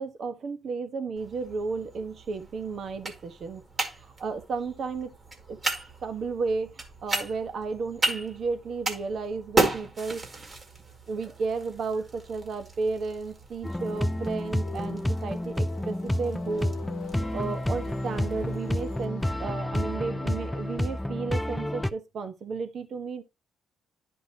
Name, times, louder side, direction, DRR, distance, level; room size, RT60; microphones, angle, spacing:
voice 1, 0.0-3.6 4.2-5.1 5.5-5.6 6.0-6.7 7.0-10.2 11.1-16.7 17.3-23.2, right 4 dB, 55° right, 1.3 m, -33 dB
sound 1, 1.2-19.0, right 2 dB, 30° right, 2.1 m, -35 dB
sound 2, 13.6-21.9, left 1 dB, 5° left, 0.5 m, -30 dB
sound 3, 13.9-20.9, left 10 dB, 85° left, 0.8 m, -46 dB
10.0 x 5.3 x 2.9 m
cardioid pair, 90°, 0 cm